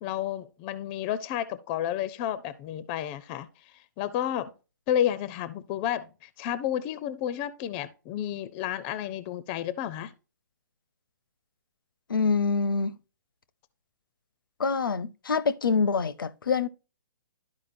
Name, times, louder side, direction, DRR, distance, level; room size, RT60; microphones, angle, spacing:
voice 1, 0.0-3.5 4.0-4.5 4.9-10.1, left 11 dB, 25° left, 0.5 m, -31 dB
voice 2, 12.1-12.9 14.6-16.7, left 5 dB, 80° left, 0.6 m, -25 dB
12.5 x 4.9 x 2.6 m
hypercardioid pair, 145°, 11 cm